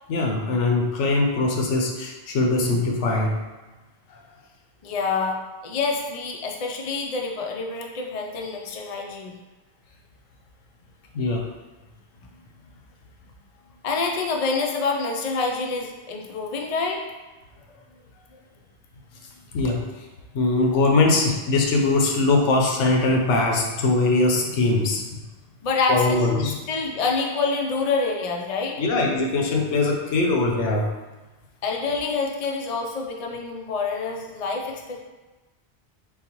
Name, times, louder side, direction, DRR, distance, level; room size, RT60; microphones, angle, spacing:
voice 1, 0.1-3.4 11.1-11.5 19.5-19.9 20.3-25.2 25.9-26.6 28.8-30.9, left 2 dB, 85° left, 1 dB, 1.0 m, -21 dB
voice 2, 4.8-9.3 13.8-17.0 25.6-28.8 31.6-35.0, left 4 dB, 50° left, 1 dB, 0.5 m, -27 dB
4.0 x 3.7 x 3.0 m, 1.2 s
omnidirectional pair, 1.2 m